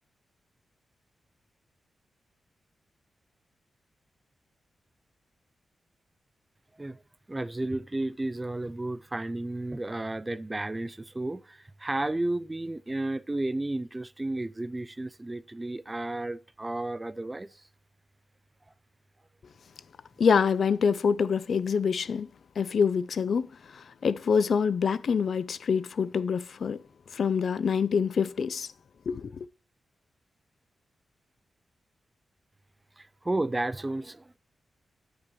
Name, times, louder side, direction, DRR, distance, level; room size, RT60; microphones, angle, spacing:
voice 1, 7.3-17.6 33.0-34.4, right 2 dB, 15° right, 0.3 m, -32 dB
voice 2, 20.2-22.3 22.6-26.8 27.1-28.7 29.1-29.5, left 6 dB, 55° left, 0.4 m, -26 dB
10.0 x 9.0 x 3.0 m
wide cardioid pair, 180°, 0 cm